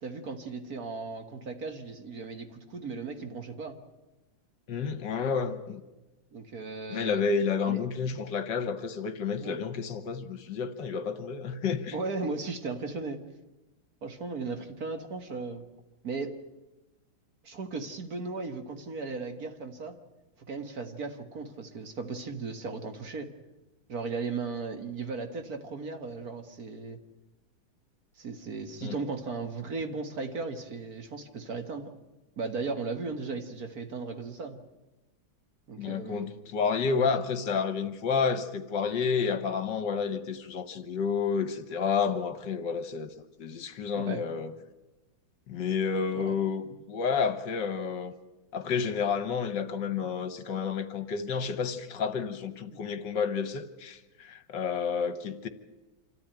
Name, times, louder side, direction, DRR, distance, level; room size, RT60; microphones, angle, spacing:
voice 1, 0.0-3.8 6.3-7.2 7.7-7.8 9.4-9.6 11.9-13.2 14.0-15.7 16.0-16.4 17.4-20.0 20.5-23.3 23.9-27.0 28.2-31.9 32.4-34.6 35.7-36.3 43.9-44.3 46.1-46.4, right 4 dB, 50° right, 2.0 m, -36 dB
voice 2, 4.7-5.8 6.9-12.0 28.8-29.0 35.8-44.5 45.5-48.1 48.5-55.5, left 6 dB, 65° left, 1.7 m, -30 dB
26.5 x 14.0 x 9.1 m
omnidirectional pair, 2.1 m